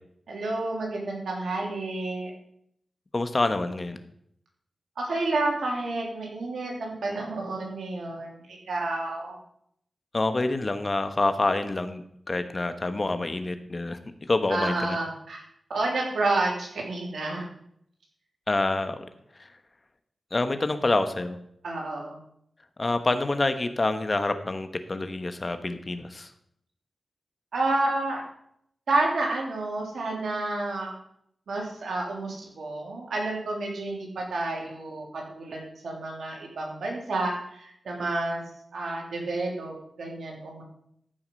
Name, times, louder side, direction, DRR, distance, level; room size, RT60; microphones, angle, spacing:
voice 1, 0.3-2.3 5.0-9.3 14.5-15.4 15.7-17.5 21.6-22.2 27.5-28.2 28.9-30.9 31.5-38.4 38.7-40.6, right 2 dB, 85° right, -1 dB, 3.2 m, -30 dB
voice 2, 3.1-4.0 10.1-15.0 18.5-19.0 19.3-19.5 20.3-21.4 22.8-26.3, left 2 dB, 45° left, 9 dB, 1.1 m, -27 dB
14.0 x 5.8 x 5.3 m, 0.72 s
cardioid pair, 45°, 0 cm